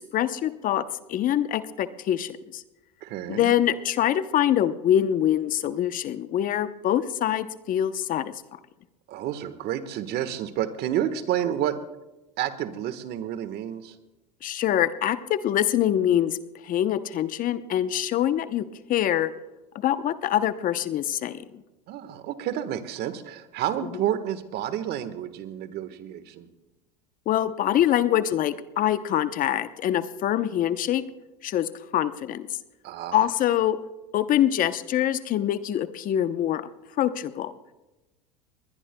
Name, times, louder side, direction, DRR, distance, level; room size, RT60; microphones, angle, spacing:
voice 1, 0.0-2.6 3.3-8.3 14.4-16.4 16.6-19.3 19.8-21.4 27.3-31.0 31.4-32.5 33.1-33.8 34.1-36.7 37.0-37.5, left 11 dB, 40° left, 13 dB, 0.8 m, -24 dB
voice 2, 3.0-3.5 9.1-11.8 12.4-13.9 21.9-26.5 32.8-33.3, right 11 dB, 50° right, 11 dB, 1.4 m, -30 dB
21.5 x 20.0 x 2.2 m, 1.1 s
hypercardioid pair, 90°, 21 cm